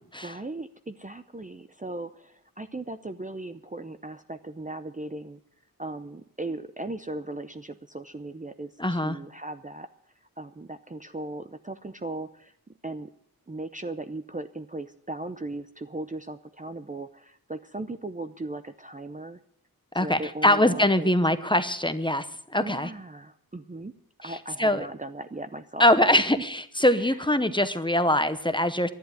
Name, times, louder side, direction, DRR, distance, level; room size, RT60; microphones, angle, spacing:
voice 1, 0.2-5.4 5.8-9.9 10.4-12.5 12.8-13.1 13.5-19.4 19.9-21.1 22.6-23.9 24.2-26.3 27.0-27.2, right 2 dB, 20° right, 9 dB, 0.6 m, -37 dB
voice 2, 8.8-9.2 19.9-22.3 22.5-22.9 24.2-24.9 25.8-28.9, left 1 dB, 15° left, 11 dB, 0.9 m, -23 dB
11.5 x 10.5 x 9.4 m, 0.73 s
wide cardioid pair, 85°, 36 cm